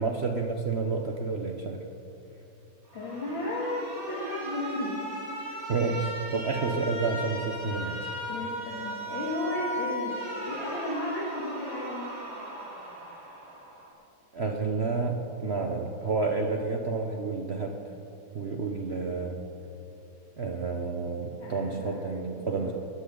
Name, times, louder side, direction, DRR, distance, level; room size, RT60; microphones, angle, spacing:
voice 1, 0.0-1.8 5.7-8.0 14.3-17.8 18.3-19.4 20.4-22.7, right 4 dB, 55° right, 3 dB, 0.7 m, -30 dB
voice 2, 2.9-5.0 8.3-10.2 10.4-12.1 21.4-21.9 22.4-22.7, left 1 dB, 70° left, -5 dB, 2.7 m, -34 dB
Alarm, 2.9-13.9, equal, 80° right, 4.7 m, -37 dB
20.5 x 13.0 x 3.8 m, 2.8 s
omnidirectional pair, 2.2 m